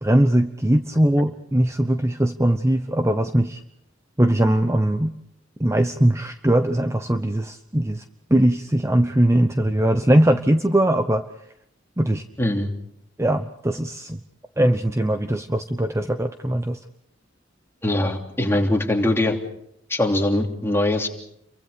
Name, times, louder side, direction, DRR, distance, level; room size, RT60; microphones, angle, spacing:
voice 1, 0.0-3.6 4.2-5.1 5.6-8.0 8.3-11.2 12.0-12.2 13.2-14.2 14.6-16.8, right 1 dB, 15° right, 8 dB, 0.9 m, -20 dB
voice 2, 12.4-12.7 17.8-19.4 19.9-21.1, left 1 dB, 15° left, 1 dB, 3.1 m, -22 dB
29.5 x 24.0 x 5.2 m, 0.75 s
head